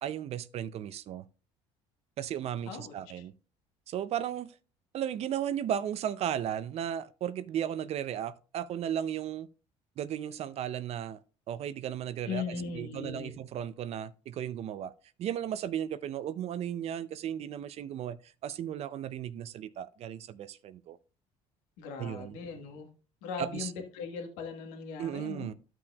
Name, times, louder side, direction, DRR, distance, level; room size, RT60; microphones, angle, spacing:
voice 1, 0.0-1.2 2.2-3.3 3.9-4.6 4.9-9.5 10.0-11.2 11.5-14.9 15.2-21.0 22.0-22.4 23.4-23.7 25.0-25.5, right 10 dB, 55° right, 0.5 m, -35 dB
voice 2, 2.7-3.2 12.2-13.3 21.8-22.9 23.2-25.5, left 6 dB, 85° left, 1.4 m, -39 dB
12.5 x 6.0 x 2.3 m
supercardioid pair, 100°, 13 cm